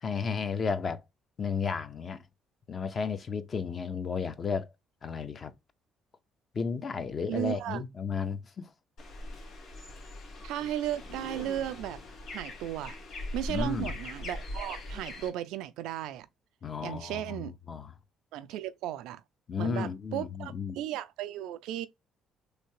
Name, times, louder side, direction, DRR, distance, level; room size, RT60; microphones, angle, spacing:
voice 1, 0.0-1.0 1.4-2.2 2.7-4.7 5.0-5.5 6.5-8.7 13.5-13.9 16.6-17.9 19.5-20.8, left 5 dB, 40° left, 0.6 m, -33 dB
voice 2, 7.3-7.8 10.4-12.0 12.3-13.0 13.3-16.3 16.8-17.6 18.3-19.2 19.6-21.9, right 12 dB, 85° right, 0.3 m, -35 dB
sound 1, 9.0-15.3, left 1 dB, 70° left, 1.5 m, -40 dB
3.2 x 2.8 x 3.0 m
cardioid pair, 100°, 0 cm